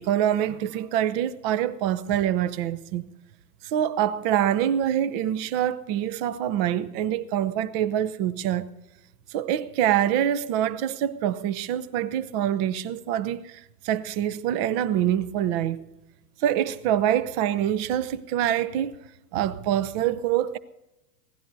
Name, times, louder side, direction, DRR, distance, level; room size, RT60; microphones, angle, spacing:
voice 1, 0.0-3.1 3.6-8.7 9.3-15.9 16.4-19.0 19.3-20.6, right 11 dB, 40° right, 0.8 m, -25 dB
23.0 x 17.0 x 2.7 m
hypercardioid pair, 115°, 48 cm